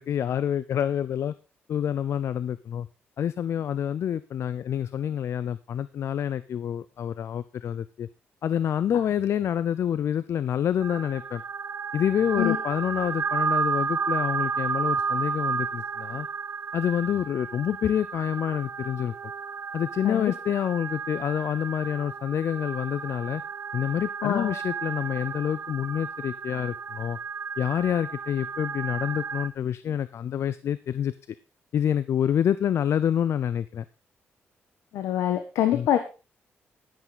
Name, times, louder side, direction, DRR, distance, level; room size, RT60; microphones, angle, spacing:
voice 1, 0.0-1.3 1.7-2.9 3.2-8.1 8.4-11.4 11.9-16.3 16.7-19.1 19.7-23.4 23.7-27.2 27.6-31.1 31.7-33.9 35.7-35.9, left 9 dB, 65° left, 16 dB, 0.6 m, -27 dB
sound 1, 10.8-29.5, right 6 dB, 50° right, 0.7 m, -32 dB
voice 2, 24.2-24.5 34.9-36.0, left 11 dB, 85° left, 8 dB, 1.3 m, -25 dB
11.0 x 10.5 x 4.0 m, 0.31 s
cardioid pair, 75°, 5 cm